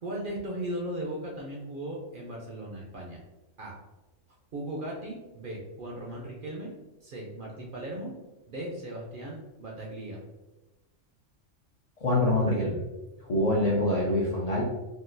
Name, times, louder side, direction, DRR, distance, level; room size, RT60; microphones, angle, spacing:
voice 1, 0.0-3.2 3.6-3.8 4.5-6.7 7.0-8.1 8.5-10.2, right 1 dB, 55° right, -2 dB, 0.6 m, -37 dB
voice 2, 12.0-12.8 13.2-14.6, left 1 dB, 50° left, -5 dB, 0.4 m, -25 dB
3.7 x 2.4 x 2.5 m, 1.1 s
omnidirectional pair, 1.3 m